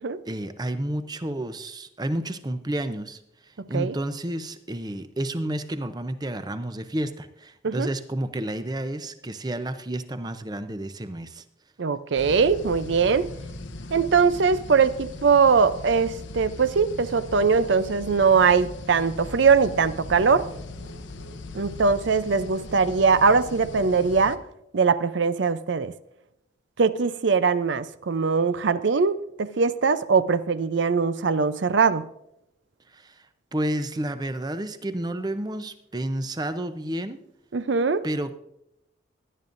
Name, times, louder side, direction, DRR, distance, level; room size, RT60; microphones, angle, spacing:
voice 1, 0.2-11.4 32.9-37.2 38.0-38.4, right 1 dB, 20° right, 10 dB, 0.6 m, -31 dB
voice 2, 11.8-13.3 13.9-20.5 21.5-24.4 24.7-25.9 26.8-32.0 37.5-38.1, right 5 dB, 70° right, 14 dB, 0.5 m, -21 dB
sound 1, 12.1-24.4, left 2 dB, 75° left, 0.8 m, -39 dB
17.5 x 11.0 x 2.6 m, 0.80 s
head